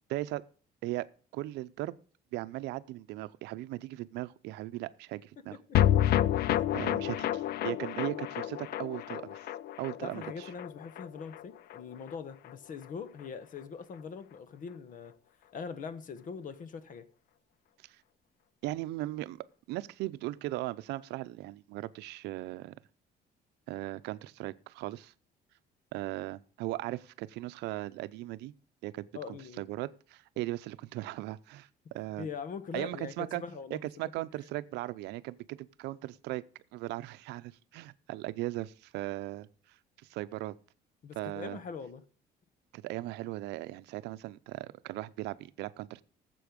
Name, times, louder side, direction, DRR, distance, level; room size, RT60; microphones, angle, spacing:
voice 1, 0.1-0.4 0.8-1.1 1.3-2.0 2.3-5.6 6.7-9.5 9.8-10.5 17.8-18.0 18.6-19.4 19.7-22.7 23.7-25.1 25.9-28.5 28.8-31.7 31.9-32.3 32.7-33.4 33.7-36.4 36.7-39.5 40.0-40.5 41.2-41.6 42.7-46.0, right 17 dB, 85° right, 0.6 m, -38 dB
voice 2, 5.4-5.8 6.5-6.8 10.0-15.1 15.5-17.1 29.1-29.6 32.2-33.8 41.0-42.0, left 5 dB, 50° left, 1.2 m, -42 dB
sound 1, 5.7-12.2 12.4-12.5 12.8-12.9, left 12 dB, 65° left, 0.5 m, -30 dB
13.0 x 7.7 x 5.2 m
cardioid pair, 110°, 17 cm